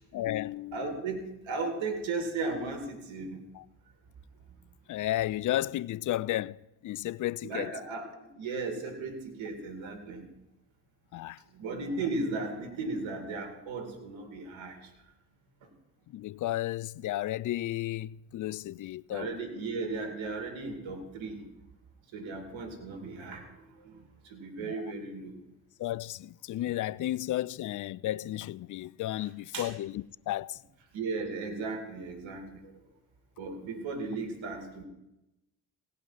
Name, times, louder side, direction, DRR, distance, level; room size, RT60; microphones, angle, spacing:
voice 1, 0.1-0.9 3.5-3.6 4.9-7.7 11.1-11.4 16.1-19.3 24.6-24.9 25.8-30.6, left 14 dB, 40° left, 0.4 m, -33 dB
voice 2, 0.7-3.4 7.4-8.1 8.4-10.3 11.5-14.8 19.1-21.4 22.1-23.5 23.8-25.3 29.2-29.3 29.5-29.7 30.9-32.6 33.4-34.8, right 3 dB, 70° right, 2.5 m, -36 dB
17.0 x 5.8 x 5.7 m
hypercardioid pair, 50°, 48 cm